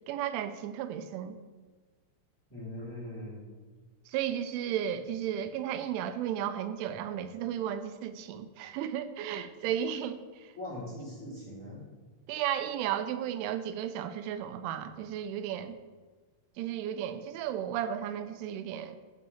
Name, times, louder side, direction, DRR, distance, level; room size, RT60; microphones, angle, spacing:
voice 1, 0.1-1.4 4.1-10.5 12.3-15.8 16.6-19.0, right 10 dB, 85° right, 10 dB, 3.0 m, -34 dB
voice 2, 2.5-3.4 10.5-11.8, left 1 dB, 5° left, -6 dB, 1.5 m, -41 dB
11.5 x 3.9 x 6.9 m, 1.4 s
omnidirectional pair, 5.6 m